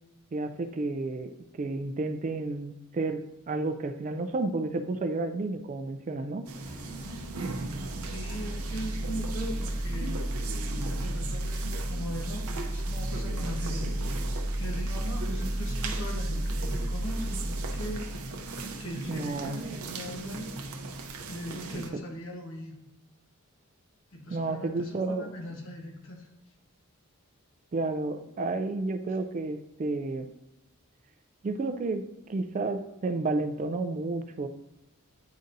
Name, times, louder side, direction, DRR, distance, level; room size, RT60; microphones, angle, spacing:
voice 1, 0.3-6.5 19.1-19.8 21.7-22.0 24.3-25.3 27.7-30.3 31.4-34.5, right 3 dB, 35° right, 9 dB, 0.3 m, -31 dB
sound 1, 6.5-21.9, right 3 dB, 80° right, 0.6 m, -39 dB
sound 2, 6.6-19.3, right 1 dB, 15° left, 1.9 m, -33 dB
voice 2, 8.0-10.2 10.9-13.9 14.6-18.1 18.8-20.5 21.3-22.7 24.1-26.3, equal, 60° left, 1 dB, 1.1 m, -40 dB
9.4 x 3.9 x 2.6 m, 0.88 s
head